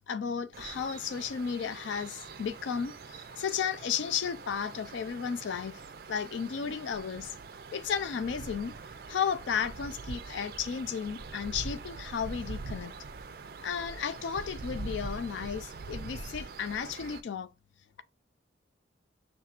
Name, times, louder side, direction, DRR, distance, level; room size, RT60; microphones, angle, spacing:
voice 1, 0.1-5.8 6.1-7.3 7.7-8.7 9.1-12.9 13.6-17.5, left 7 dB, 85° left, 0.4 m, -34 dB
sound 1, 0.5-17.2, right 4 dB, 50° right, 0.4 m, -43 dB
5.8 x 3.2 x 2.4 m
head